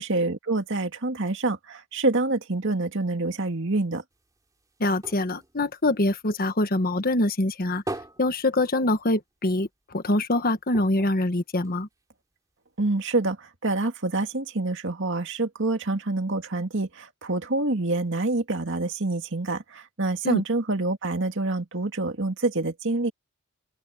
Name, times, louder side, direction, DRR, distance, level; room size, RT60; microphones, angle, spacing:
voice 1, 0.0-4.0 12.8-23.1, right 2 dB, 60° right, 2.2 m, -27 dB
sound 1, 4.1-6.8 7.1-9.4 9.7-9.8 10.1-10.2 10.7-12.2 12.8-12.9, right 1 dB, 15° right, 2.8 m, -41 dB
voice 2, 4.8-7.8 8.2-11.9 20.2-20.4, left 2 dB, 45° left, 1.4 m, -24 dB
open air
head